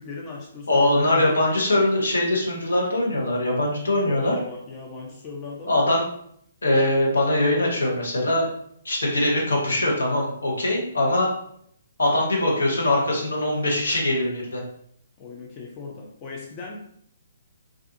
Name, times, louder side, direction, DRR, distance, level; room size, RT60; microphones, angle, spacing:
voice 1, 0.0-1.3 4.0-5.8 15.2-16.8, left 3 dB, 30° left, -1 dB, 0.4 m, -37 dB
voice 2, 0.7-4.4 5.7-6.0 6.6-8.5 8.8-11.3 12.0-14.6, left 1 dB, 70° left, -2 dB, 0.9 m, -22 dB
2.5 x 2.3 x 2.6 m, 0.68 s
figure-of-eight pair, 130°, 0 cm